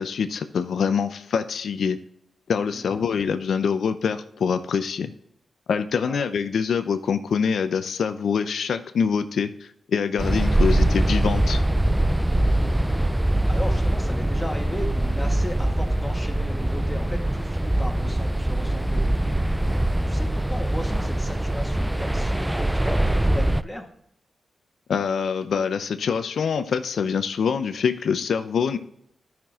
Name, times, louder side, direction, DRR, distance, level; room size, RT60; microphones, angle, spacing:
voice 1, 0.0-2.0 2.5-5.1 5.7-9.5 9.9-11.6 24.9-28.8, left 6 dB, 80° left, 9 dB, 0.6 m, -25 dB
voice 2, 2.7-3.1 6.1-6.3 13.5-23.9, left 1 dB, 5° left, 2 dB, 1.9 m, -36 dB
sound 1, 10.2-23.6, right 1 dB, 10° right, 0.3 m, -23 dB
12.0 x 6.0 x 3.7 m, 0.70 s
cardioid pair, 70°, 0 cm